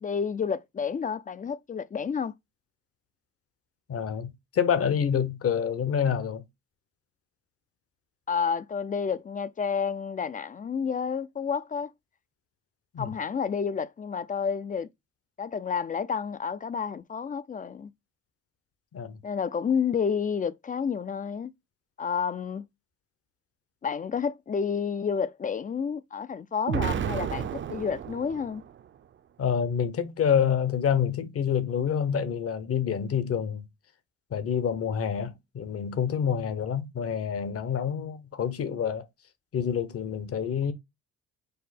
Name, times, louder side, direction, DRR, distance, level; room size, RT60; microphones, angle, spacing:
voice 1, 0.0-2.3 8.3-11.9 13.0-14.9 15.4-17.9 19.2-21.5 22.0-22.6 23.8-28.6, left 6 dB, 30° left, 0.4 m, -30 dB
voice 2, 3.9-6.4 12.9-13.1 18.9-19.2 29.4-33.7 34.3-39.0 39.5-40.7, left 8 dB, 50° left, 0.9 m, -27 dB
Explosion, 26.7-28.8, right 9 dB, 40° right, 0.5 m, -32 dB
5.4 x 2.1 x 4.1 m
cardioid pair, 90°, 30 cm